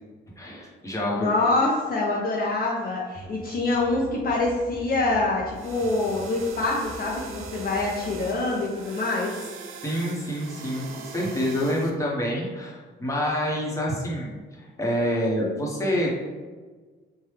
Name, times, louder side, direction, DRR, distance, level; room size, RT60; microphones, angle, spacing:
voice 1, 0.4-1.3 9.8-16.2, equal, 15° left, -4 dB, 0.9 m, -27 dB
voice 2, 1.2-9.4, left 2 dB, 50° left, -3 dB, 0.5 m, -25 dB
sound 1, 3.1-8.4, equal, 20° right, 0.6 m, -44 dB
sound 2, 5.5-11.9, right 6 dB, 85° right, 0.4 m, -41 dB
3.2 x 2.2 x 3.2 m, 1.4 s
cardioid pair, 90°, 20 cm